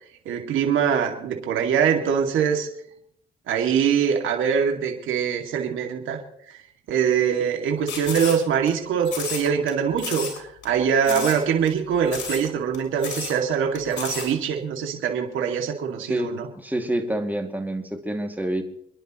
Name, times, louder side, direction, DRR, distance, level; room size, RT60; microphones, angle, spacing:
voice 1, 0.3-2.7 3.5-6.2 6.9-10.3 10.6-16.5, right 7 dB, 80° right, 2 dB, 2.4 m, -23 dB
sound 1, 7.9-8.7 9.0-9.7 10.0-10.4 10.6-10.7 11.0-11.4 11.7-11.8 12.1-12.5 12.7-12.8 13.0-13.3 13.7-14.3, left 6 dB, 65° left, 6.9 m, -32 dB
voice 2, 16.0-18.6, right 1 dB, 10° right, 3 dB, 2.4 m, -28 dB
29.0 x 11.0 x 3.1 m, 0.72 s
cardioid pair, 90°, 20 cm